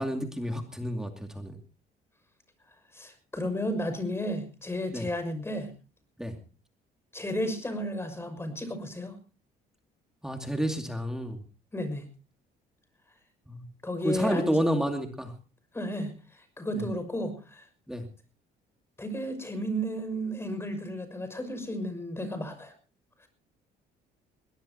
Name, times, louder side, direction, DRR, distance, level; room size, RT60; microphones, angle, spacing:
voice 1, 0.0-1.6 4.9-5.1 6.2-6.4 10.2-11.4 13.5-13.6 14.0-15.3 17.9-18.0, equal, 5° right, 4 dB, 2.5 m, -30 dB
voice 2, 2.9-5.7 7.1-9.2 11.7-12.1 13.8-14.6 15.7-17.6 19.0-22.7, equal, 15° left, 9 dB, 6.2 m, -33 dB
22.0 x 18.5 x 2.9 m, 0.34 s
cardioid pair, 110°, 17 cm